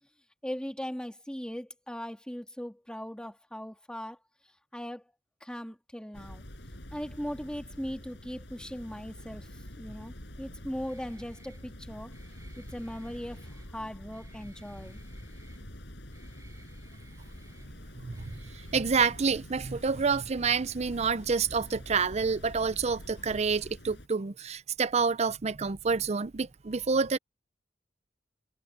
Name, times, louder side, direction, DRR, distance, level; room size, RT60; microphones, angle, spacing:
voice 1, 0.4-4.2 4.7-5.1 5.4-6.4 6.9-9.5 9.8-12.1 12.6-15.0, equal, 5° left, 1.9 m, -39 dB
sound 1, 6.1-24.1, equal, 70° left, 7.1 m, -46 dB
Guitar, 10.9-18.9, right 2 dB, 20° right, 6.2 m, -59 dB
voice 2, 18.0-18.3 18.7-27.2, right 5 dB, 35° right, 0.6 m, -28 dB
head